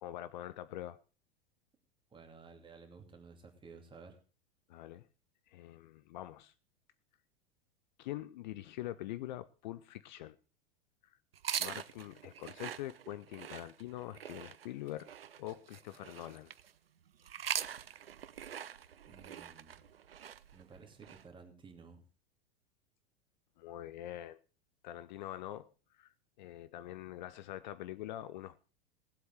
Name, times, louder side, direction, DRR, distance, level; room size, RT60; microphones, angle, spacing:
voice 1, 0.0-1.0 4.7-5.1 5.5-6.5 8.0-10.4 11.6-15.1 15.4-16.5 23.6-24.4 24.8-25.7 26.0-26.1 26.4-28.6, left 14 dB, 50° left, 15 dB, 0.6 m, -44 dB
voice 2, 2.1-4.2 19.1-19.8 20.5-22.0, right 4 dB, 15° right, 4 dB, 2.6 m, -55 dB
sound 1, 11.3-16.7 17.2-21.2, right 9 dB, 70° right, 0.6 m, -43 dB
19.0 x 8.0 x 4.7 m, 0.35 s
figure-of-eight pair, 90°, 30 cm